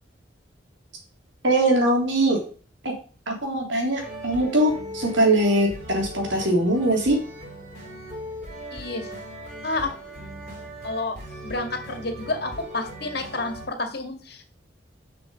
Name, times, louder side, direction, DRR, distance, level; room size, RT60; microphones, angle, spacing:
voice 1, 1.4-2.4 2.8-2.9 3.3-7.2, right 1 dB, 75° right, 0 dB, 3.4 m, -21 dB
sound 1, 4.0-13.7, equal, 40° right, 4.9 m, -38 dB
voice 2, 8.7-9.1 9.6-9.9 10.8-11.2 11.4-14.5, left 2 dB, 55° left, 6 dB, 1.9 m, -30 dB
7.7 x 6.0 x 6.9 m, 0.39 s
head